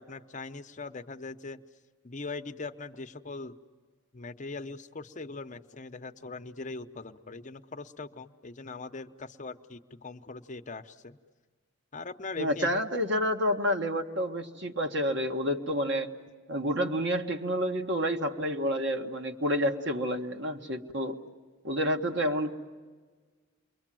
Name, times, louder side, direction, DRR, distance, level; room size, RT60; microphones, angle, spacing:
voice 1, 0.0-1.6 2.0-3.6 4.1-11.2 11.9-12.9, left 3 dB, 40° left, 7 dB, 0.8 m, -41 dB
voice 2, 12.4-16.1 16.5-21.2 21.6-22.5, equal, 60° right, 4 dB, 1.6 m, -29 dB
29.0 x 22.5 x 7.6 m, 1.4 s
head